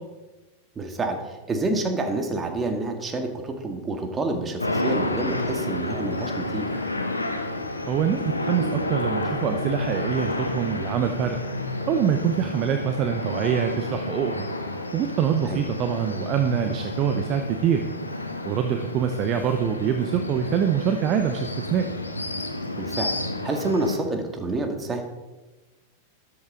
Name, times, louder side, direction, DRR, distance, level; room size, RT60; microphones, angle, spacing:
voice 1, 0.8-1.2 1.5-6.8 15.5-15.6 22.8-23.1 23.4-25.0, right 2 dB, 20° right, 5 dB, 1.9 m, -28 dB
sound 1, 4.6-24.0, left 2 dB, 80° left, 1.2 m, -30 dB
voice 2, 7.9-11.4 11.9-14.5 14.9-17.8 18.4-21.9, right 8 dB, 35° right, 7 dB, 0.9 m, -25 dB
13.0 x 12.0 x 3.8 m, 1.2 s
figure-of-eight pair, 90°, 0 cm